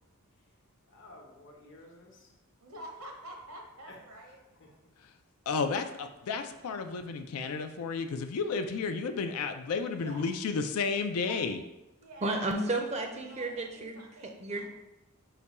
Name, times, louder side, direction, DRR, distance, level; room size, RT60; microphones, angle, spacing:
voice 1, 0.9-2.3 3.8-4.8, left 1 dB, 55° left, 0 dB, 0.8 m, -54 dB
voice 2, 2.6-4.4 10.0-10.2 11.3-11.4 12.0-12.4 13.1-14.7, right 1 dB, 70° right, 2 dB, 0.8 m, -47 dB
voice 3, 5.5-11.6, left 4 dB, 80° left, 7 dB, 0.4 m, -32 dB
voice 4, 12.2-14.7, right 2 dB, 30° right, 3 dB, 0.5 m, -33 dB
4.8 x 2.2 x 4.1 m, 0.96 s
head